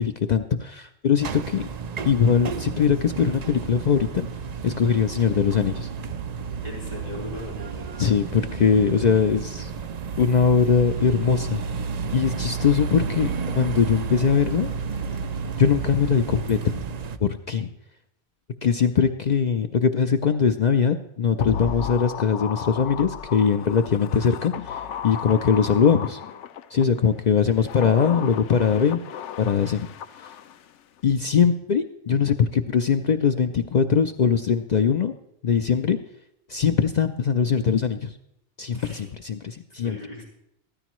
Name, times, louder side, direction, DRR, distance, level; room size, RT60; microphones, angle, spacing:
voice 1, 0.0-1.7 2.0-4.3 4.6-5.9 8.0-9.7 10.2-11.6 12.1-14.7 15.6-16.8 17.2-17.7 18.6-26.2 26.7-29.0 29.4-29.9 31.0-35.1 35.4-36.0 36.5-38.1 38.6-40.0, left 6 dB, 55° left, 7 dB, 0.5 m, -21 dB
sound 1, 1.2-17.2, right 6 dB, 50° right, 0.5 m, -31 dB
voice 2, 6.6-8.0 38.7-39.0 39.7-40.2, left 1 dB, 35° left, -5 dB, 3.7 m, -38 dB
sound 2, 21.4-26.9 27.5-30.7 31.0-31.1, left 8 dB, 80° left, 0.9 m, -34 dB
14.0 x 13.0 x 3.1 m, 0.78 s
omnidirectional pair, 1.2 m